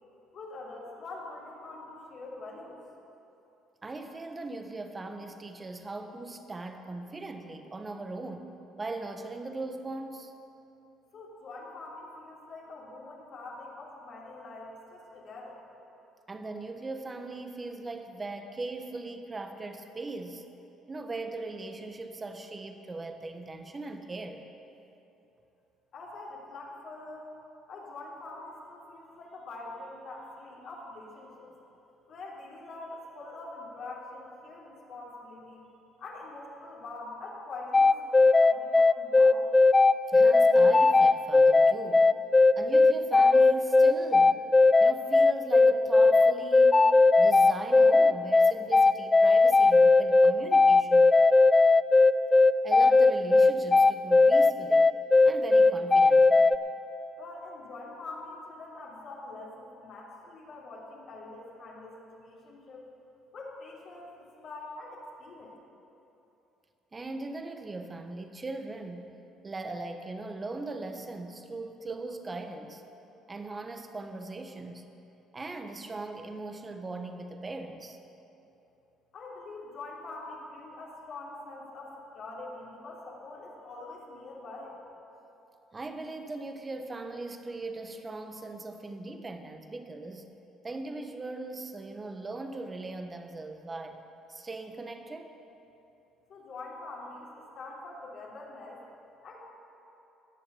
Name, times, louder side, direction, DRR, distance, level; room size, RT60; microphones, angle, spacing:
voice 1, 0.3-2.8 11.1-15.6 25.9-27.3 27.7-31.5 32.1-35.6 36.0-39.4 57.2-62.9 63.3-65.6 79.1-84.8 96.3-98.8 99.2-99.4, left 2 dB, 60° left, -5 dB, 3.3 m, -44 dB
voice 2, 3.8-10.3 16.3-20.4 20.9-24.4 40.1-42.1 42.6-44.4 44.8-46.8 47.2-51.1 52.6-54.9 55.2-56.5 66.9-69.1 69.4-72.8 73.3-74.9 75.3-78.0 85.7-90.3 90.6-94.0 94.3-95.3, right 2 dB, 25° right, 6 dB, 1.3 m, -39 dB
sound 1, 37.7-56.6, left 3 dB, 25° left, 0.4 m, -18 dB
19.0 x 7.1 x 7.0 m, 2.9 s
hypercardioid pair, 65°, 0 cm